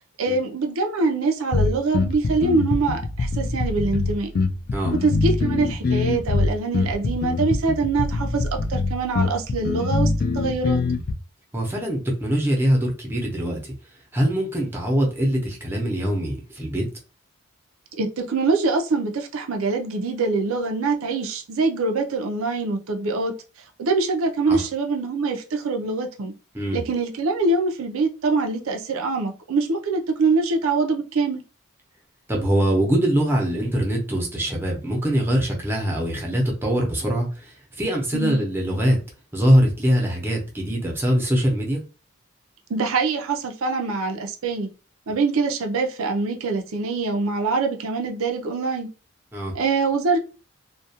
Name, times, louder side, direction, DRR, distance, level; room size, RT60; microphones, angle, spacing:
voice 1, 0.2-4.3 5.0-10.8 18.0-23.3 23.8-26.3 26.7-31.4 38.1-38.4 42.7-44.7 45.1-48.9 49.5-50.2, right 3 dB, 80° right, 0.5 m, -24 dB
sound 1, 1.5-11.1, left 3 dB, 45° left, 0.3 m, -23 dB
voice 2, 11.5-13.7 14.1-16.8 24.5-24.6 26.5-26.8 32.3-39.0 39.3-41.8 49.3-49.5, equal, 10° right, 0.7 m, -23 dB
2.4 x 2.2 x 2.7 m
head